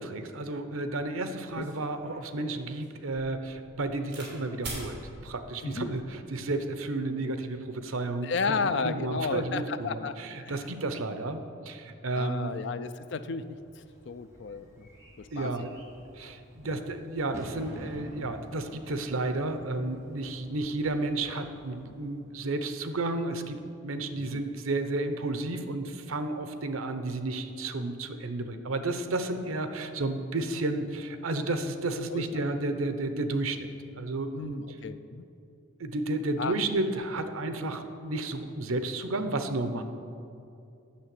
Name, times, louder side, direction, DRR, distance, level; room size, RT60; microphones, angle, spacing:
voice 1, 0.0-8.6 8.8-12.5 15.3-15.7 16.1-33.7 34.0-34.6 35.8-39.8, right 2 dB, 85° right, 8 dB, 0.8 m, -32 dB
sound 1, 1.5-4.3 4.6-4.9 5.7-6.1, right 2 dB, 50° right, 2.9 m, -43 dB
voice 2, 8.2-10.8 12.2-14.9 15.2-15.5 16.2-16.4 16.6-16.8 24.1-24.4 32.1-32.4 34.3-35.2 36.4-36.5, left 4 dB, 55° left, 12 dB, 0.4 m, -34 dB
Bird / Fireworks, 13.3-22.5, equal, 15° right, 1.6 m, -49 dB
8.6 x 6.6 x 7.7 m, 2.6 s
head